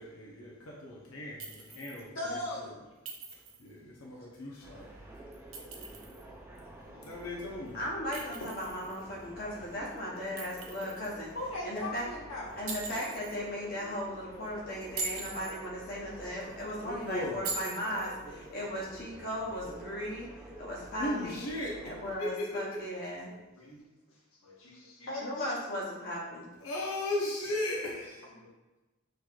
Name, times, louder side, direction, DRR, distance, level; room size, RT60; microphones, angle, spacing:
voice 1, 0.0-2.7 3.6-4.9 7.0-7.8 16.8-17.4 21.0-21.8 22.2-22.6 26.6-28.2, left 1 dB, 80° left, -3 dB, 0.9 m, -36 dB
Chink clink, 1.4-2.0 3.1-3.7 5.3-6.2 8.1-9.0 10.4-11.1 12.7-13.4 14.8-15.6 17.4-18.1, right 3 dB, 70° right, 0.8 m, -41 dB
voice 2, 2.1-2.8 4.4-4.6 6.9-7.3 11.3-12.6 14.6-15.0 18.2-18.5 19.6-19.8 23.2-23.9 24.4-25.6 28.3-28.5, left 1 dB, 65° left, -3 dB, 1.2 m, -41 dB
sound 1, 4.6-22.1, right 1 dB, 10° right, 0.4 m, -49 dB
voice 3, 7.7-11.3 11.6-12.1 12.6-20.3 20.6-21.4 21.8-23.3 25.2-26.5, equal, 40° left, -5 dB, 0.8 m, -37 dB
6.0 x 3.3 x 2.4 m, 1.1 s
head